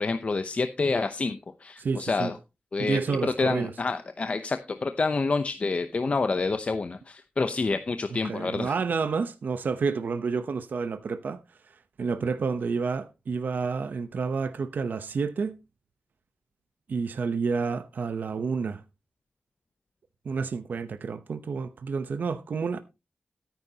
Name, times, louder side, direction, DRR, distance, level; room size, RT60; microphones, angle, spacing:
voice 1, 0.0-2.4 2.7-8.8, left 3 dB, 40° left, 0.7 m, -28 dB
voice 2, 1.8-2.3 2.8-3.7 8.2-11.4 11.7-15.6 16.9-18.8 20.2-22.8, right 5 dB, 70° right, 0.8 m, -29 dB
13.5 x 9.5 x 2.8 m
wide cardioid pair, 125°, 3 cm